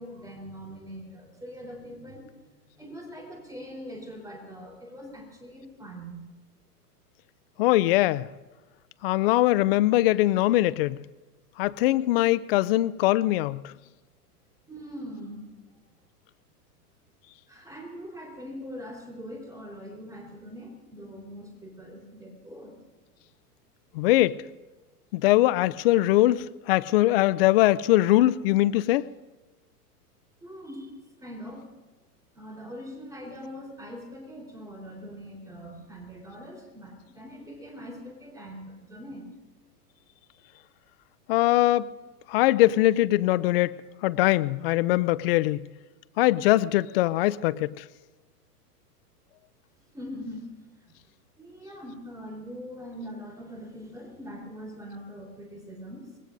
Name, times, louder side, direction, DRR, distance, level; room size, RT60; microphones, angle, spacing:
voice 1, 0.0-6.1 14.7-15.5 17.5-22.8 30.4-30.9 31.2-31.7 32.3-39.3 49.9-50.6 50.9-51.0 51.4-56.1, equal, 5° right, 3.9 m, -42 dB
voice 2, 7.6-8.3 9.0-11.0 11.6-13.7 23.9-24.4 25.1-29.1 41.3-41.9 42.3-43.8 44.0-45.6 46.2-47.8, left 16 dB, 40° left, 0.4 m, -22 dB
25.0 x 20.0 x 2.6 m
hypercardioid pair, 120°, 48 cm